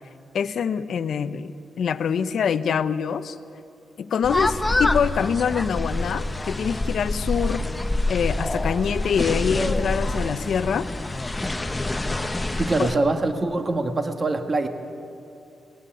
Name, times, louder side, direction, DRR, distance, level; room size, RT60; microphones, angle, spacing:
voice 1, 0.3-1.5 1.8-3.4 4.0-7.6 8.1-10.9, left 7 dB, 70° left, 12 dB, 0.7 m, -25 dB
sound 1, 4.2-13.0, left 2 dB, 15° left, 0.9 m, -26 dB
voice 2, 12.5-14.7, right 2 dB, 35° right, 6 dB, 1.5 m, -24 dB
20.0 x 16.5 x 9.1 m, 2.6 s
cardioid pair, 95°, 0 cm